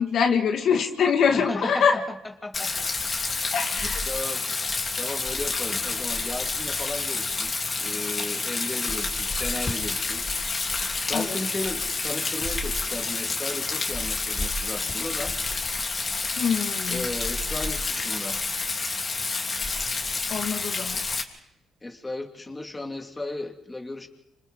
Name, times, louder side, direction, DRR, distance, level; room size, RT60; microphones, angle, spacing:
voice 1, 0.0-2.0 3.5-4.0 11.1-11.4 16.4-17.1 20.3-21.0, left 6 dB, 65° left, 3 dB, 1.9 m, -24 dB
voice 2, 1.3-2.0 2.4-2.9 3.7-4.6 5.0-10.3 11.1-15.3 16.9-18.4 21.8-24.1, left 2 dB, 20° left, 3 dB, 2.6 m, -35 dB
Rain, 2.5-21.2, left 3 dB, 35° left, 3.2 m, -29 dB
29.5 x 27.0 x 3.8 m, 0.88 s
cardioid pair, 90°, 0 cm